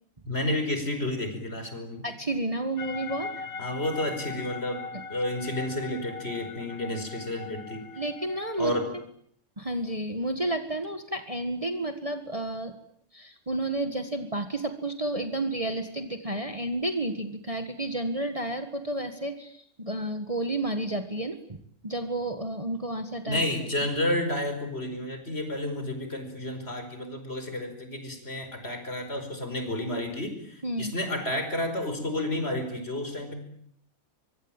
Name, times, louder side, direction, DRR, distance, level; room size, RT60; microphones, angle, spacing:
voice 1, 0.3-2.1 3.6-7.8 8.6-8.9 23.3-33.3, left 1 dB, 45° left, 7 dB, 5.4 m, -31 dB
voice 2, 2.0-3.3 8.0-8.7 9.6-12.7 13.1-21.4 21.8-23.5 30.6-30.9, right 1 dB, 25° right, 7 dB, 1.8 m, -31 dB
sound 1, 2.8-8.9, left 4 dB, 85° left, 1.9 m, -40 dB
24.5 x 23.5 x 9.1 m, 0.69 s
omnidirectional pair, 1.5 m